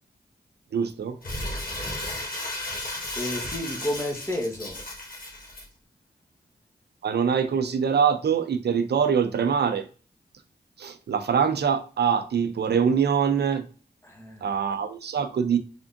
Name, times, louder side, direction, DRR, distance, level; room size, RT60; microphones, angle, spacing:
voice 1, 0.7-1.2 7.0-9.8 10.8-13.6 14.4-15.6, right 7 dB, 75° right, 0.5 m, -24 dB
Crumpling crinkling, 1.2-5.6, left 1 dB, 55° left, 1.4 m, -34 dB
voice 2, 3.2-4.8 14.0-14.5, left 1 dB, 15° left, 1.2 m, -31 dB
3.5 x 3.5 x 2.5 m
cardioid pair, 50°, 17 cm